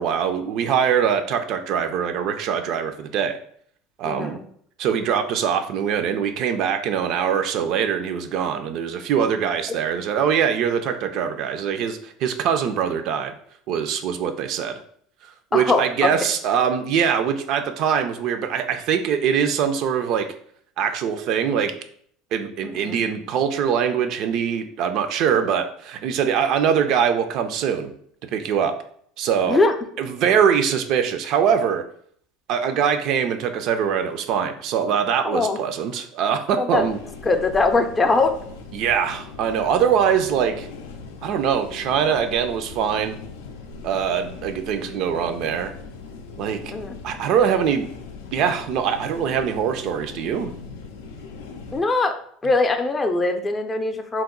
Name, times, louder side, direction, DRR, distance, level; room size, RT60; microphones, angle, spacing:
voice 1, 0.0-3.4 4.0-4.4 4.8-13.3 13.7-14.8 15.5-20.3 20.8-21.7 22.3-27.9 28.3-28.8 29.2-29.6 30.0-31.8 32.5-37.0 38.7-40.7 41.2-43.2 43.8-45.7 46.4-46.6 47.0-47.9 48.3-50.5, right 7 dB, 60° right, 8 dB, 0.3 m, -23 dB
voice 2, 4.0-4.4 9.7-9.8 15.5-16.1 22.6-22.9 29.5-29.7 35.2-35.7 36.5-36.9 37.3-38.4 46.7-47.0 51.7-52.2 52.4-54.2, left 3 dB, 25° left, 6 dB, 0.4 m, -21 dB
sound 1, 36.7-51.8, left 4 dB, 85° left, 0.4 m, -40 dB
2.9 x 2.1 x 3.6 m, 0.63 s
supercardioid pair, 90°, 0 cm